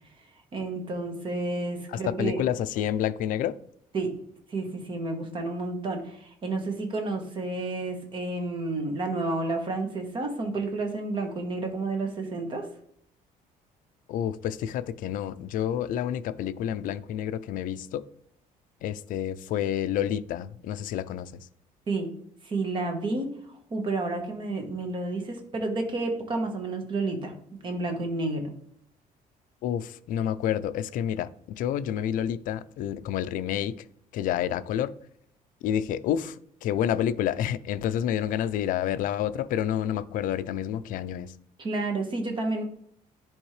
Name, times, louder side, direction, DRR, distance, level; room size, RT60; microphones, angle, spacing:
voice 1, 0.5-2.4 3.9-4.1 4.5-12.7 21.9-22.1 22.4-23.3 23.7-27.3 27.6-28.5 41.6-42.6, right 2 dB, 35° right, 1.3 m, -30 dB
voice 2, 1.9-3.6 14.1-18.0 18.8-21.3 29.6-33.7 34.1-34.9 35.6-36.4 36.6-41.3, left 10 dB, 65° left, 0.4 m, -29 dB
10.5 x 3.6 x 3.2 m
cardioid pair, 160°, 15 cm